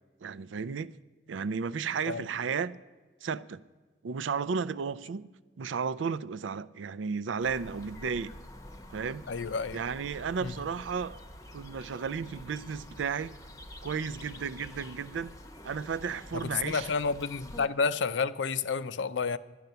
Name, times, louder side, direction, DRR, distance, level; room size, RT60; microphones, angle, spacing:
voice 1, 0.2-1.0 1.3-2.8 3.2-3.6 4.0-5.3 5.6-8.3 8.9-9.2 9.7-11.2 11.5-13.4 13.8-15.3 15.6-16.9, right 6 dB, 85° right, 0.4 m, -33 dB
sound 1, 7.4-17.7, left 1 dB, 20° left, 0.8 m, -47 dB
voice 2, 9.3-9.8 10.4-10.5 16.3-19.4, left 5 dB, 75° left, 0.5 m, -30 dB
10.5 x 10.5 x 6.7 m
head